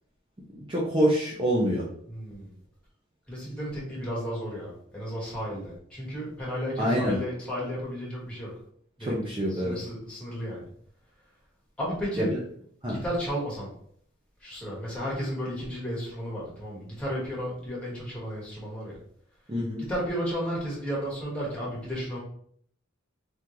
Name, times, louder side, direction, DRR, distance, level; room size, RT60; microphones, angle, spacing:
voice 1, 0.7-1.8 6.8-7.2 9.0-9.8 12.2-12.4 12.8-13.0 19.5-19.8, equal, 25° right, -5 dB, 0.7 m, -26 dB
voice 2, 2.1-2.5 3.3-8.5 9.0-9.2 9.5-10.6 11.8-12.3 12.9-13.7 14.4-19.0 19.8-22.2, equal, 5° left, -6 dB, 1.6 m, -33 dB
3.7 x 3.5 x 3.1 m, 0.64 s
head